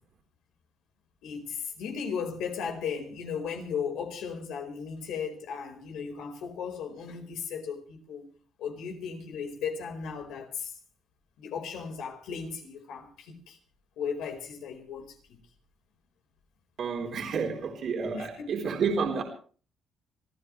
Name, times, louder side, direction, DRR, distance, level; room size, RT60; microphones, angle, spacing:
voice 1, 1.2-8.2 8.6-10.7 11.4-13.6 14.0-15.4 18.1-18.5, left 6 dB, 90° left, 4.8 m, -36 dB
voice 2, 16.8-19.2, right 5 dB, 60° right, 3.8 m, -30 dB
26.0 x 15.5 x 3.3 m
cardioid pair, 90°, 0 cm